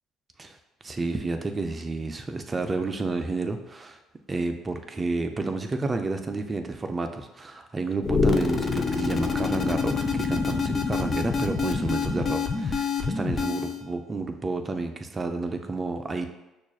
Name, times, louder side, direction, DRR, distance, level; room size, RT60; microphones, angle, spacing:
voice 1, 0.8-4.0 4.3-16.3, right 3 dB, 25° right, 6 dB, 0.4 m, -30 dB
sound 1, 8.0-13.8, left 5 dB, 35° left, 0.5 m, -26 dB
5.9 x 2.4 x 2.3 m, 0.99 s
supercardioid pair, 85°, 0 cm